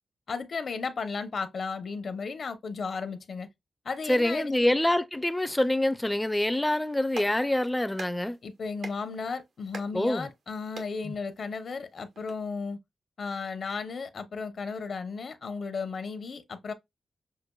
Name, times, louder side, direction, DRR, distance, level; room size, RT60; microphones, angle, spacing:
voice 1, 0.3-3.5 3.8-4.8 8.4-12.8 13.2-16.7, left 4 dB, 60° left, 0.7 m, -34 dB
voice 2, 4.1-8.4 9.9-10.3 11.0-11.1, left 1 dB, 10° left, 0.5 m, -26 dB
Clapping, 6.8-12.3, right 3 dB, 80° right, 1.3 m, -47 dB
6.5 x 2.5 x 2.2 m
wide cardioid pair, 115°, 0 cm